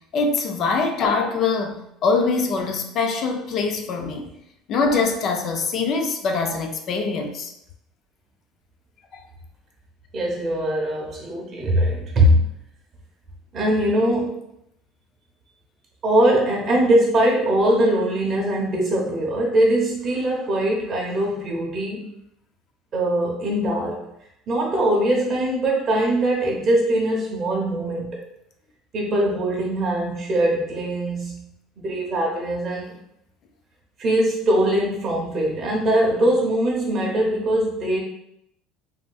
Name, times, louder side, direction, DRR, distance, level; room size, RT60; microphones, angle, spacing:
voice 1, 0.1-4.3 4.7-7.5 9.1-9.2, left 4 dB, 40° left, 4 dB, 0.3 m, -23 dB
voice 2, 10.1-12.4 13.5-14.5 16.0-22.1 22.9-24.0 24.5-28.2 28.9-31.4 31.8-32.9 34.0-38.0, right 1 dB, 25° right, -2 dB, 0.8 m, -21 dB
3.4 x 2.5 x 2.3 m, 0.78 s
cardioid pair, 170°, 0 cm